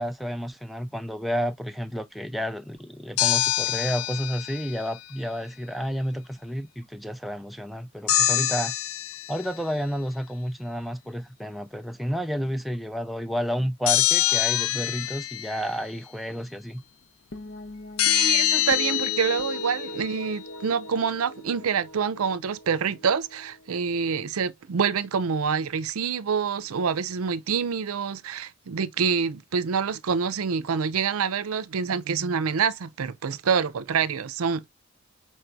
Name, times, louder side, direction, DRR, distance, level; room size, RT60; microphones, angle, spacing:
voice 1, 0.0-8.7 9.3-16.8, equal, ahead, 0.4 m, -31 dB
sound 1, 3.2-4.9 8.1-9.5 13.9-15.8 18.0-20.2, left 13 dB, 80° left, 0.4 m, -25 dB
sound 2, 17.3-23.9, left 1 dB, 65° left, 0.9 m, -40 dB
voice 2, 18.1-34.7, right 6 dB, 85° right, 0.5 m, -26 dB
4.5 x 4.5 x 2.5 m
head